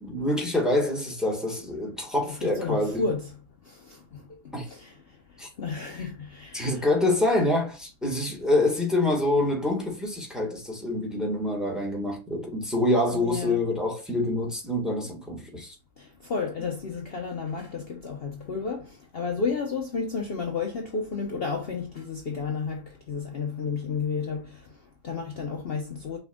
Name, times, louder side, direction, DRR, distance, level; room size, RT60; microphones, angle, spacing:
voice 1, 0.0-3.0 4.5-4.7 5.4-5.5 6.5-15.7, left 1 dB, ahead, 1.4 m, -26 dB
voice 2, 2.3-3.3 3.6-6.9 13.1-13.6 16.0-26.2, left 5 dB, 50° left, 0.9 m, -32 dB
5.8 x 3.5 x 2.3 m
omnidirectional pair, 1.5 m